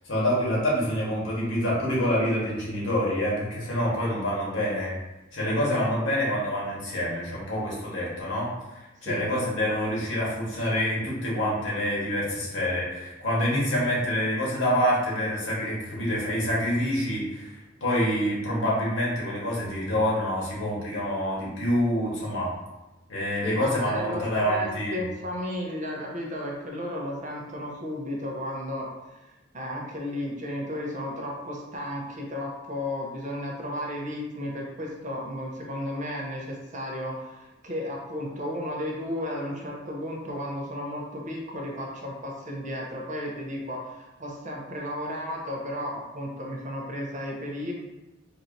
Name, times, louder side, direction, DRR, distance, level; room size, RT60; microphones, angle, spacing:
voice 1, 0.0-4.9 5.3-17.5 17.8-22.5 23.1-25.0, equal, 70° left, -5 dB, 1.4 m, -27 dB
voice 2, 23.4-29.3 29.5-47.7, left 1 dB, 40° right, -1 dB, 0.7 m, -34 dB
4.4 x 2.7 x 2.6 m, 1.1 s
head